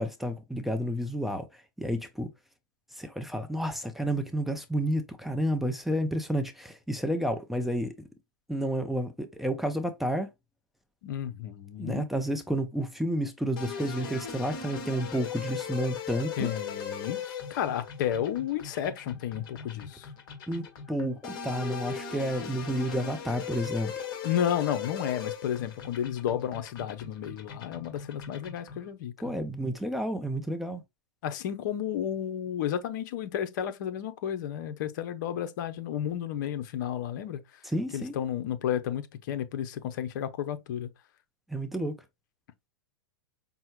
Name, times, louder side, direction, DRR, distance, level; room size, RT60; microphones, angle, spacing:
voice 1, 0.0-2.3 2.9-8.0 8.5-10.3 11.8-16.5 20.5-24.0 29.2-30.8 37.6-38.2 41.5-42.0, equal, ahead, 0.6 m, -31 dB
voice 2, 11.0-12.0 16.4-20.1 24.2-29.4 31.2-37.4 37.9-40.9, left 10 dB, 55° left, 0.8 m, -32 dB
sound 1, 13.6-28.9, left 6 dB, 40° left, 1.6 m, -39 dB
5.5 x 2.2 x 3.1 m
hypercardioid pair, 120°, 12 cm